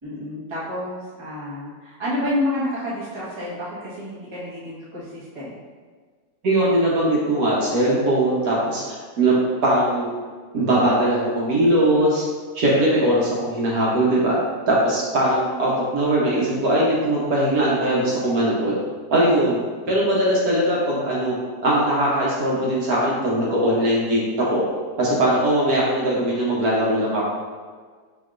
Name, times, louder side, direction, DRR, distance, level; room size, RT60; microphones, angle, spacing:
voice 1, 0.0-5.5 19.1-19.5, left 1 dB, 20° right, -9 dB, 0.9 m, -29 dB
voice 2, 6.4-9.4 9.6-10.1 10.5-12.3 12.5-14.4 14.7-18.7 19.1-19.6 19.9-21.4 21.6-24.6 25.0-27.3, right 1 dB, 65° right, -5 dB, 1.3 m, -20 dB
5.7 x 3.0 x 2.5 m, 1.6 s
omnidirectional pair, 1.8 m